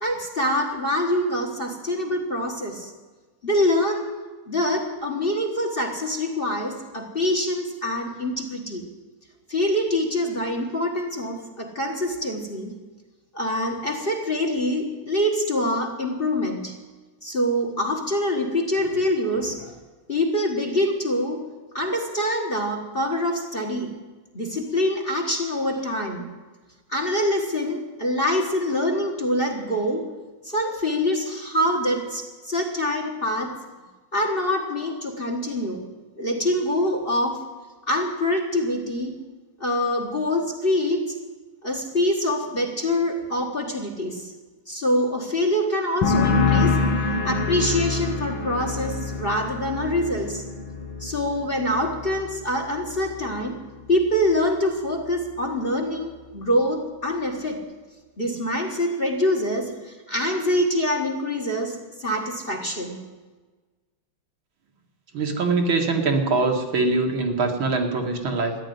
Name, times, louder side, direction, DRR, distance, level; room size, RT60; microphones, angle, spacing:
voice 1, 0.0-2.9 3.4-4.1 4.5-8.9 9.5-12.7 13.3-16.8 17.2-19.7 20.1-21.5 21.7-23.9 24.3-26.3 26.9-30.1 30.4-33.6 34.1-35.9 36.2-37.4 37.9-39.2 39.6-41.2 41.6-44.3 44.7-46.8 47.2-50.4 51.0-53.6 53.9-57.6 58.2-63.0, left 1 dB, 30° left, 3 dB, 1.5 m, -25 dB
sound 1, 46.0-53.5 53.8-54.3, left 4 dB, 80° left, 2.3 m, -26 dB
voice 2, 65.1-68.6, right 3 dB, 70° right, 2 dB, 2.6 m, -23 dB
14.0 x 10.5 x 9.4 m, 1.3 s
omnidirectional pair, 2.3 m